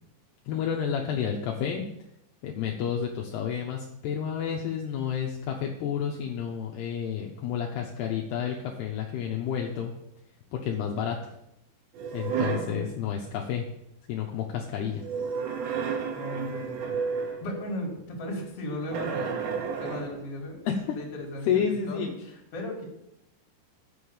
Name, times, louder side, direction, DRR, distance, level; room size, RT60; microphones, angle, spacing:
voice 1, 0.5-1.8 2.4-9.9 10.5-11.2 12.1-13.6 14.1-15.0 20.7-21.0 21.5-22.1, left 8 dB, 75° left, 0 dB, 2.7 m, -30 dB
sound 1, 11.9-12.8 15.0-17.5 18.9-20.3, right 6 dB, 80° right, 3.5 m, -31 dB
voice 2, 12.4-13.2 16.1-17.0 17.4-19.4 19.8-20.6 21.0-22.1 22.5-22.8, left 1 dB, 40° left, -1 dB, 2.7 m, -36 dB
7.7 x 6.4 x 7.2 m, 0.82 s
omnidirectional pair, 5.1 m